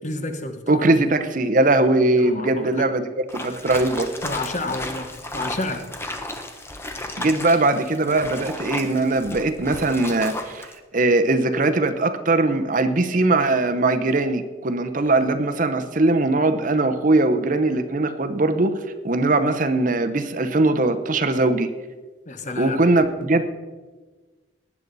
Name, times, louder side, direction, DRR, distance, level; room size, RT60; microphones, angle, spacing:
voice 1, 0.0-0.9 2.2-2.9 4.2-6.0 22.3-22.8, left 2 dB, 40° left, 7 dB, 1.0 m, -30 dB
voice 2, 0.7-3.1 3.3-4.1 7.2-10.7 10.9-18.7 19.0-21.7 22.6-23.4, right 2 dB, 40° right, 9 dB, 0.7 m, -20 dB
sound 1, 3.3-10.8, left 1 dB, 15° left, 0.9 m, -34 dB
19.0 x 9.7 x 4.1 m, 1.3 s
head